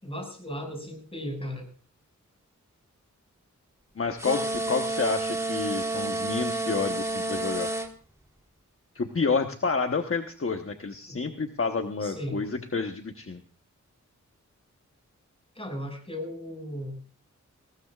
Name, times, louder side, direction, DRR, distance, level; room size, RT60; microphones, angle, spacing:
voice 1, 0.0-1.7 11.1-11.2 12.0-12.4 15.5-17.0, equal, 20° left, 3 dB, 6.2 m, -36 dB
voice 2, 4.0-7.7 8.9-13.4, left 4 dB, 45° left, 5 dB, 1.2 m, -29 dB
sound 1, 4.2-7.9, right 2 dB, 10° right, 1.8 m, -30 dB
20.0 x 18.0 x 2.5 m, 0.39 s
wide cardioid pair, 85°, 30 cm